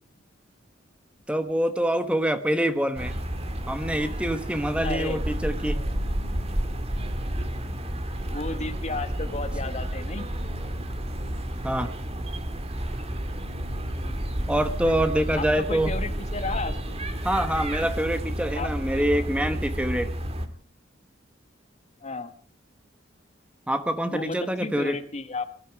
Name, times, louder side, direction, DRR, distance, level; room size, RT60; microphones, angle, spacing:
voice 1, 1.3-3.1 3.7-5.8 11.6-11.9 14.5-15.9 17.2-20.1 23.7-25.0, right 1 dB, 5° right, 9 dB, 1.1 m, -25 dB
sound 1, 3.0-20.5, equal, 35° right, 1.7 m, -31 dB
voice 2, 4.8-5.2 8.0-10.3 14.0-14.5 15.4-17.0 18.5-19.0 22.0-22.3 24.1-25.5, left 3 dB, 35° left, 10 dB, 1.2 m, -34 dB
22.0 x 13.0 x 4.7 m, 0.42 s
head